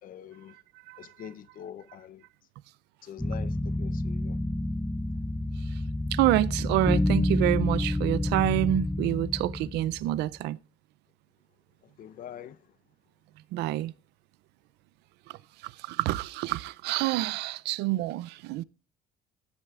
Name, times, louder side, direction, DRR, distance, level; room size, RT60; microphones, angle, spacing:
voice 1, 0.0-0.6 1.0-2.2 3.0-4.4 11.8-12.7, left 9 dB, 55° left, 0.8 m, -44 dB
sound 1, 3.2-10.2, left 1 dB, 5° left, 0.5 m, -29 dB
voice 2, 6.1-10.6 13.5-13.9 15.9-18.6, right 16 dB, 85° right, 0.5 m, -27 dB
16.0 x 7.9 x 2.4 m
cardioid pair, 110°, 17 cm